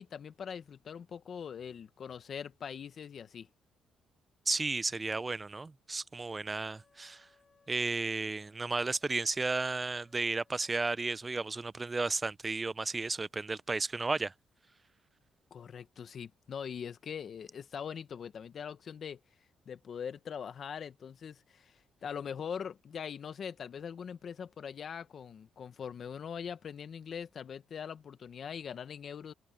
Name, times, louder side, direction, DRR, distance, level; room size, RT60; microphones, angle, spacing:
voice 1, 0.0-3.5 15.5-19.2 19.7-29.3, left 7 dB, 55° left, 1.3 m, -42 dB
voice 2, 4.5-7.3 7.7-14.3, right 3 dB, 25° right, 0.5 m, -33 dB
Wind instrument woodwind instrument, 6.7-11.2, left 4 dB, 30° left, 2.0 m, -70 dB
cardioid pair, 90°, 0 cm